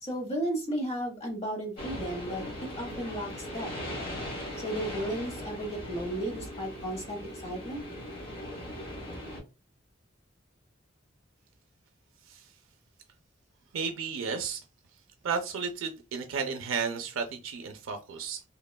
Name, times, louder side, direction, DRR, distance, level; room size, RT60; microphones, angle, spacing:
voice 1, 0.0-3.7 4.6-7.8, right 1 dB, 30° left, 0.8 m, -34 dB
sound 1, 1.8-9.4, equal, 45° left, 1.3 m, -39 dB
voice 2, 13.7-14.6 15.2-18.4, right 5 dB, 85° right, 0.4 m, -33 dB
3.0 x 2.1 x 2.2 m
head